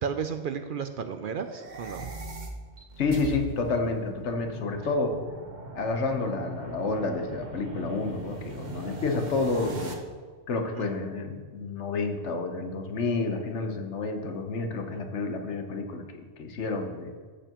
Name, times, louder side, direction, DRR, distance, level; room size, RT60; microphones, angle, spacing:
voice 1, 0.0-2.1 10.7-10.9, right 6 dB, 60° right, 8 dB, 0.6 m, -33 dB
sound 1, 1.4-9.9, right 3 dB, 45° right, 1.0 m, -40 dB
voice 2, 3.0-5.2 5.7-10.0 10.5-16.0 16.4-17.1, left 3 dB, 80° left, 5 dB, 1.3 m, -29 dB
13.5 x 6.9 x 3.0 m, 1.5 s
omnidirectional pair, 1.2 m